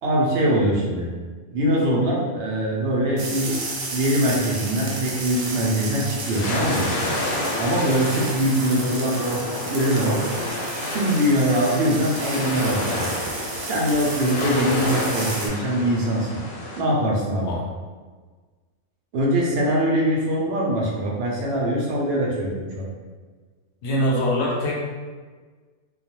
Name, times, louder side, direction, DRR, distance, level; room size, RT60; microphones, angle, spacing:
voice 1, 0.0-1.1 1.5-3.6 3.9-6.9 7.6-10.2 10.9-13.1 13.6-16.4 16.7-17.5 19.1-22.9, right 1 dB, 60° right, -3 dB, 0.7 m, -22 dB
sound 1, 3.2-15.5, right 2 dB, 85° right, 1.0 m, -33 dB
sound 2, 5.4-16.8, left 1 dB, 85° left, 1.0 m, -30 dB
voice 2, 23.8-24.8, equal, 65° left, -3 dB, 0.8 m, -23 dB
2.4 x 2.2 x 2.8 m, 1.4 s
omnidirectional pair, 1.4 m